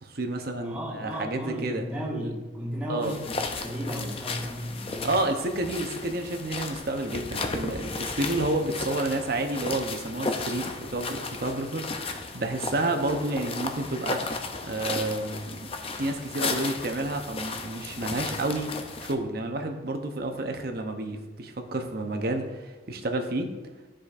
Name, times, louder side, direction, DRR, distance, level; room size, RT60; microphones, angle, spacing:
voice 1, 0.0-1.8 2.2-2.3 2.9-3.1 5.0-14.2 14.6-15.6 16.0-18.7 19.0-23.5, right 2 dB, 55° right, 5 dB, 0.8 m, -30 dB
voice 2, 0.6-5.1, equal, 5° right, -5 dB, 1.5 m, -34 dB
sound 1, 3.0-19.1, left 3 dB, 30° left, 0.5 m, -34 dB
12.0 x 5.0 x 2.5 m, 1.2 s
head